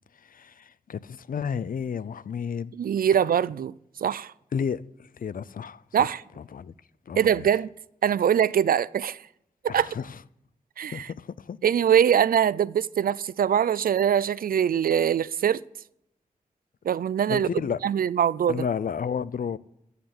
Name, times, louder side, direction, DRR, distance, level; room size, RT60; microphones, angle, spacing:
voice 1, 0.2-2.7 4.5-6.1 6.4-6.7 7.1-7.5 9.7-10.2 10.9-11.6 17.3-17.8 18.5-19.6, left 7 dB, 75° left, 0.5 m, -32 dB
voice 2, 2.7-3.7 4.0-4.3 5.9-6.2 7.2-7.7 8.0-9.2 9.6-9.9 10.8-11.1 11.6-15.6 16.8-17.5 17.8-18.7, right 9 dB, 90° right, 0.4 m, -23 dB
15.0 x 6.7 x 9.6 m
cardioid pair, 55°, 14 cm